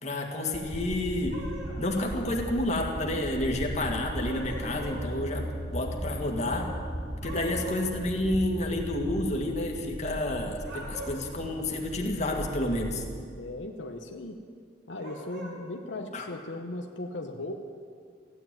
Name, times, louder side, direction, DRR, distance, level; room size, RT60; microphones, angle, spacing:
voice 1, 0.0-1.5 1.8-6.8 7.2-13.0 16.1-16.3, left 1 dB, 40° left, 1 dB, 2.0 m, -30 dB
sound 1, 0.5-9.2, right 1 dB, 45° right, 1.3 m, -38 dB
sound 2, 1.3-2.1 4.2-5.1 7.2-7.8 10.6-11.3 15.0-15.6, right 1 dB, 65° right, 3.4 m, -42 dB
sound 3, 3.4-13.2, equal, 20° left, 2.1 m, -39 dB
voice 2, 7.3-7.6 13.4-14.4 14.9-17.5, left 2 dB, 85° left, 3 dB, 1.1 m, -38 dB
15.5 x 10.0 x 9.1 m, 2.2 s
head